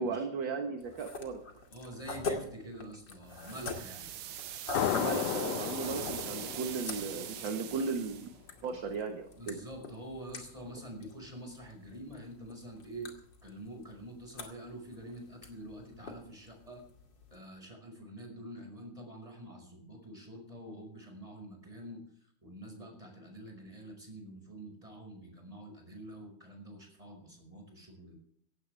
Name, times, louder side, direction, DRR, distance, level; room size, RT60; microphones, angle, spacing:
voice 1, 0.0-1.4 4.9-8.3 8.6-9.6, right 4 dB, 50° right, 4 dB, 1.7 m, -36 dB
sound 1, 0.8-17.4, left 3 dB, 40° left, 2.7 m, -45 dB
voice 2, 1.7-4.1 5.9-6.2 8.7-8.8 9.4-13.1 13.4-16.8 17.3-28.2, right 1 dB, 10° right, 3 dB, 5.4 m, -47 dB
sound 2, 3.3-8.3, right 11 dB, 90° right, 1.1 m, -42 dB
sound 3, 4.7-8.1, left 11 dB, 75° left, 1.5 m, -35 dB
17.0 x 16.0 x 3.4 m, 0.65 s
omnidirectional pair, 3.5 m